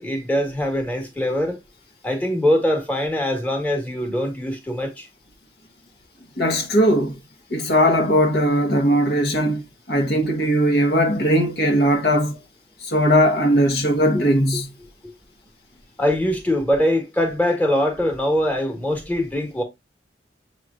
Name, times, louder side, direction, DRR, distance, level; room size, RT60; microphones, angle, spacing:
voice 1, 0.0-1.6 2.0-5.1 15.0-15.1 16.0-19.6, left 1 dB, 10° left, 1.3 m, -22 dB
voice 2, 6.4-7.2 7.5-9.6 9.9-12.4 12.8-14.7, equal, 55° left, 1.0 m, -19 dB
7.1 x 3.1 x 2.4 m
head